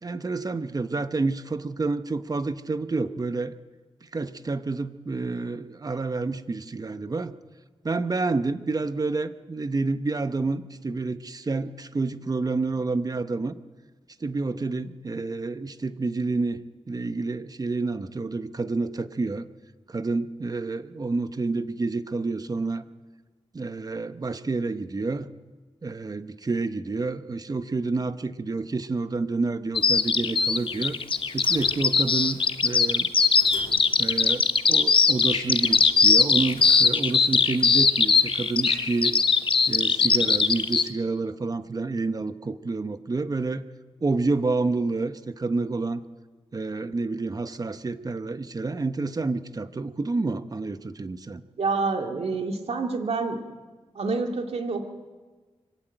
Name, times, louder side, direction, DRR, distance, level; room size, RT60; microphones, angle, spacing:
voice 1, 0.0-3.5 4.1-7.3 7.8-13.5 14.2-16.6 16.9-19.5 19.9-22.8 23.5-25.3 25.8-31.0 31.3-33.1 34.0-39.2 39.7-43.7 44.0-46.0 46.5-51.4, right 3 dB, 35° right, 11 dB, 1.0 m, -29 dB
Bird vocalization bird call bird song, 29.7-40.9, left 5 dB, 50° left, 0.8 m, -20 dB
sound 1, 30.3-40.9, left 4 dB, 75° left, 3.0 m, -43 dB
voice 2, 51.6-53.4 53.9-54.8, right 4 dB, 75° right, 4 dB, 2.4 m, -27 dB
24.0 x 15.5 x 9.1 m, 1.3 s
wide cardioid pair, 105°, 11 cm